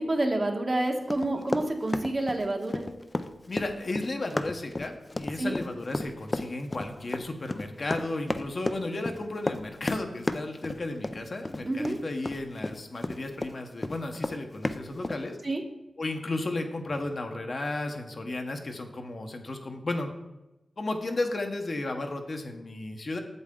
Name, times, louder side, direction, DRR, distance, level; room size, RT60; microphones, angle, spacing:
voice 1, 0.0-2.8 5.4-5.5 11.6-12.0 15.4-15.6, right 1 dB, 40° right, 2 dB, 1.2 m, -28 dB
Run, 1.1-13.5 13.8-15.2, left 2 dB, 30° left, 0.5 m, -32 dB
voice 2, 3.5-15.4 16.0-20.1 20.8-23.2, left 2 dB, 55° left, 4 dB, 1.0 m, -34 dB
8.0 x 7.5 x 3.8 m, 0.99 s
cardioid pair, 65°, 0 cm